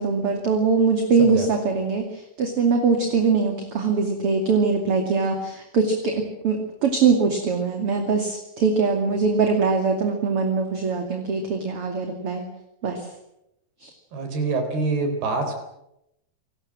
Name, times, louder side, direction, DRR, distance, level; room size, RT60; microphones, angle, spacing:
voice 1, 0.0-12.4 12.8-13.1 13.8-13.9, right 4 dB, 40° right, 3 dB, 2.7 m, -22 dB
voice 2, 14.1-15.5, right 3 dB, 60° right, 6 dB, 5.8 m, -25 dB
28.0 x 19.5 x 7.6 m, 0.83 s
omnidirectional pair, 5.2 m